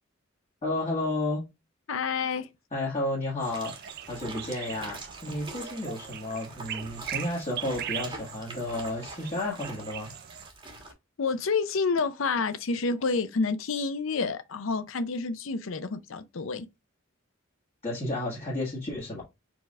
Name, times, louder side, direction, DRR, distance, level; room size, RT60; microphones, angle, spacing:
voice 1, 0.6-1.4 2.7-3.7 4.1-10.1 17.8-19.2, left 1 dB, 35° left, 1.6 m, -32 dB
voice 2, 1.9-2.5 11.2-16.7, left 4 dB, 70° left, 0.6 m, -29 dB
sound 1, 3.4-10.9, right 3 dB, 25° right, 1.4 m, -44 dB
sound 2, 3.4-10.5, right 11 dB, 50° right, 0.4 m, -41 dB
4.7 x 4.0 x 2.4 m
head